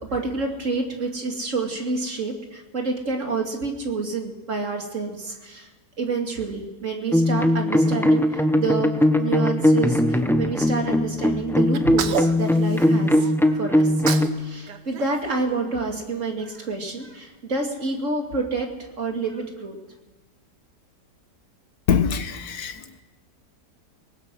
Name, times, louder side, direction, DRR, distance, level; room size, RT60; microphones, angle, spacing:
voice 1, 0.0-5.7 6.0-8.9 9.2-13.2 13.4-13.9 14.4-18.7 19.0-19.8, right 3 dB, 45° right, 2.8 m, -28 dB
sound 1, 7.1-14.3, left 1 dB, 5° left, 0.4 m, -20 dB
Sneeze, 11.7-13.3 13.8-14.4 14.7-16.1, right 7 dB, 80° right, 1.7 m, -31 dB
voice 2, 21.9-23.0, left 7 dB, 70° left, 1.5 m, -24 dB
23.5 x 19.5 x 6.2 m
omnidirectional pair, 1.8 m